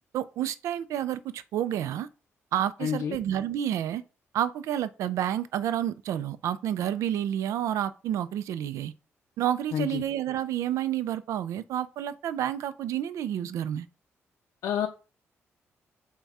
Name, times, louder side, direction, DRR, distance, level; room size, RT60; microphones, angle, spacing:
voice 1, 0.1-2.1 2.5-4.0 4.3-8.9 9.4-13.9, right 11 dB, 85° right, 0.3 m, -29 dB
voice 2, 2.8-3.2 9.7-10.0 14.6-14.9, left 8 dB, 85° left, 0.5 m, -28 dB
5.8 x 2.2 x 4.1 m
cardioid pair, 105°, 5 cm